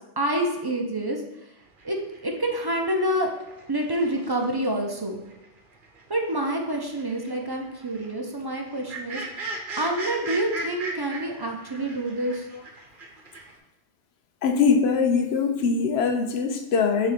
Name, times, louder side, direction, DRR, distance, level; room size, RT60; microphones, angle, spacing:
voice 1, 0.2-1.2 1.8-2.0 2.2-3.3 3.7-5.2 6.1-9.2 9.8-12.5, right 1 dB, 30° right, 2 dB, 0.5 m, -27 dB
sound 1, 1.8-5.0 5.3-13.5, right 2 dB, 50° right, 1.0 m, -38 dB
voice 2, 14.4-17.1, left 5 dB, 70° left, 6 dB, 0.8 m, -22 dB
6.7 x 3.0 x 4.9 m, 0.92 s
omnidirectional pair, 1.2 m